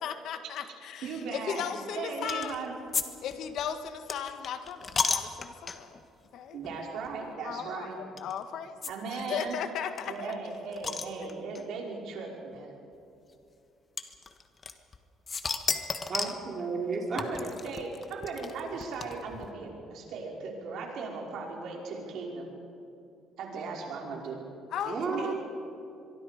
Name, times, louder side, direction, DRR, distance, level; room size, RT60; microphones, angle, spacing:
voice 1, 0.0-2.6 3.2-5.9 6.3-6.6 7.4-8.7 9.1-10.4 24.7-25.3, left 8 dB, 65° left, 8 dB, 1.6 m, -36 dB
voice 2, 1.0-1.6 2.0-2.7 6.5-8.2 8.9-9.6 10.0-12.7 17.1-22.5 23.4-24.4 24.9-25.3, right 4 dB, 70° right, -1 dB, 5.1 m, -37 dB
sound 1, 2.3-2.6 2.9-6.0 6.6-6.8 7.0-7.1 8.2-8.3 8.8-8.9 9.2-9.3 9.5-9.6 10.0-11.6 12.5-12.6 14.0-15.0 15.3-16.4 17.2-19.5, left 5 dB, 30° left, 1.5 m, -33 dB
voice 3, 16.1-17.2 24.8-25.3, right 4 dB, 40° right, 0 dB, 3.4 m, -32 dB
24.5 x 23.5 x 5.2 m, 2.7 s
cardioid pair, 115°, 0 cm